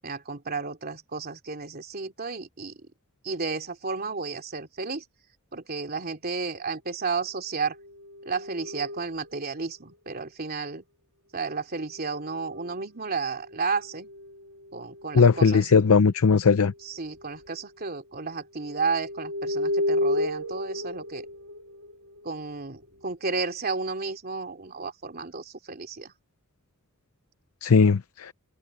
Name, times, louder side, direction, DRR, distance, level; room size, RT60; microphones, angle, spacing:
voice 1, 0.0-2.7 3.2-5.0 5.5-7.7 8.2-10.8 11.3-14.1 14.7-15.7 16.8-21.2 22.2-26.1, right 4 dB, 45° right, 2.9 m, -32 dB
sound 1, 7.7-9.6 11.9-12.8 13.4-15.7 16.5-16.8 17.0-17.5 18.2-22.9, left 1 dB, 65° right, 3.2 m, -33 dB
voice 2, 15.1-16.7 27.6-28.3, left 5 dB, 90° left, 0.6 m, -19 dB
head